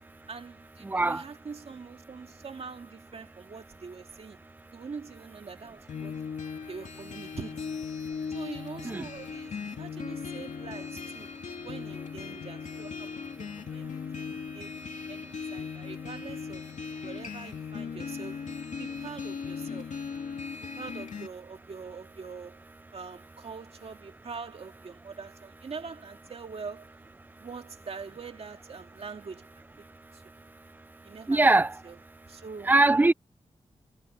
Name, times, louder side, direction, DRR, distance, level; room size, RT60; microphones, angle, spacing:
voice 1, 0.3-4.4 4.7-6.1 6.7-7.8 8.3-11.3 11.6-14.7 15.1-16.6 17.0-20.0 20.6-22.6 22.9-26.9 27.4-29.6 30.1-30.2 31.0-31.4 31.8-32.0 32.3-32.8, right 5 dB, 55° right, 2.1 m, -44 dB
voice 2, 0.9-1.2 8.8-9.0 31.3-31.7 32.7-33.1, right 2 dB, 15° right, 0.4 m, -21 dB
sound 1, 5.9-21.3, left 6 dB, 80° left, 3.3 m, -38 dB
wide cardioid pair, 155°, 13 cm